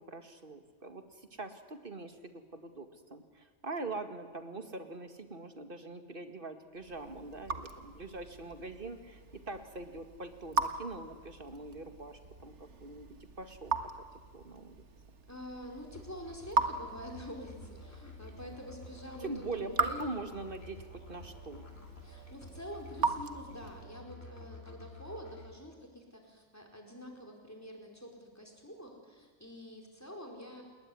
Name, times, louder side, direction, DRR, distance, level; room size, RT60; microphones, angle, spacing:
voice 1, 0.0-9.2 9.5-13.7 14.3-14.8 19.2-21.6, right 3 dB, 50° right, 8 dB, 2.2 m, -43 dB
Raindrop / Drip, 6.8-23.9, right 4 dB, 75° right, 1.8 m, -39 dB
voice 2, 15.3-20.1 22.0-30.6, equal, 15° left, 2 dB, 4.8 m, -47 dB
Musical instrument, 15.9-25.5, left 2 dB, 60° left, 3.9 m, -51 dB
29.0 x 20.5 x 10.0 m, 1.4 s
omnidirectional pair, 1.2 m